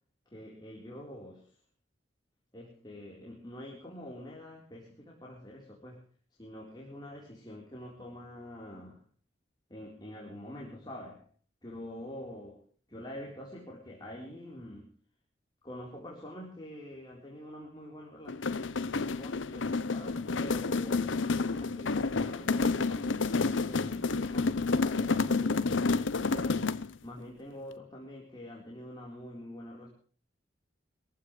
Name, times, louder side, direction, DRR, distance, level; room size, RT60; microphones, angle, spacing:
voice 1, 0.3-1.5 2.5-6.1 6.4-9.0 9.7-11.3 11.6-12.6 12.9-14.9 15.6-18.4 18.9-26.7 27.0-29.9, left 1 dB, 20° left, -3 dB, 4.1 m, -46 dB
sound 1, 18.3-27.0, left 4 dB, 85° left, 0.8 m, -29 dB
23.5 x 15.5 x 3.3 m, 0.42 s
head